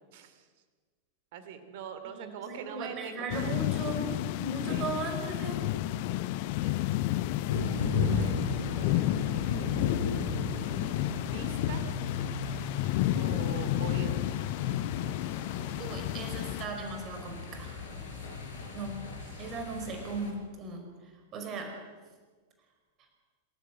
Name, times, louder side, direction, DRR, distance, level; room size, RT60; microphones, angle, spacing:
voice 1, 0.1-0.5 1.3-3.5 4.7-4.9 6.6-6.8 7.5-7.7 8.1-9.7 11.2-11.9 13.1-14.1 18.1-18.5 19.2-19.5, right 8 dB, 50° right, 9 dB, 2.7 m, -44 dB
voice 2, 2.0-5.7 15.8-17.9 18.7-19.1 19.4-20.8 21.3-21.8, right 3 dB, 30° right, 4 dB, 5.3 m, -37 dB
sound 1, 3.3-16.6, left 15 dB, 50° left, 0.8 m, -31 dB
sound 2, 7.5-20.3, left 5 dB, 65° left, 5.4 m, -35 dB
26.5 x 15.5 x 7.9 m, 1.4 s
figure-of-eight pair, 90°, 0 cm